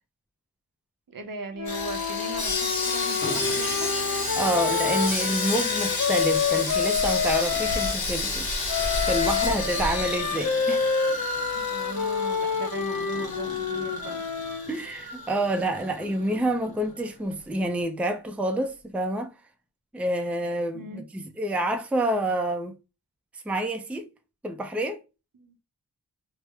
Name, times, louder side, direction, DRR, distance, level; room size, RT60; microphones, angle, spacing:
voice 1, 1.1-3.9 11.5-14.2 20.7-21.0 25.3-25.5, right 3 dB, 60° right, 0.7 m, -38 dB
Wind instrument woodwind instrument, 1.6-8.0 8.7-14.7, left 6 dB, 55° left, 0.6 m, -28 dB
Sawing, 1.7-16.3 16.8-16.9, left 3 dB, 70° left, 1.0 m, -31 dB
sound 1, 3.2-6.2 7.5-17.9 18.4-18.5 18.7-18.9, left 2 dB, 30° left, 1.0 m, -45 dB
voice 2, 4.3-10.9 14.7-19.3 19.9-22.7 23.5-24.1 24.4-25.0, right 1 dB, 5° right, 0.4 m, -28 dB
3.1 x 2.0 x 3.3 m
wide cardioid pair, 70°, 37 cm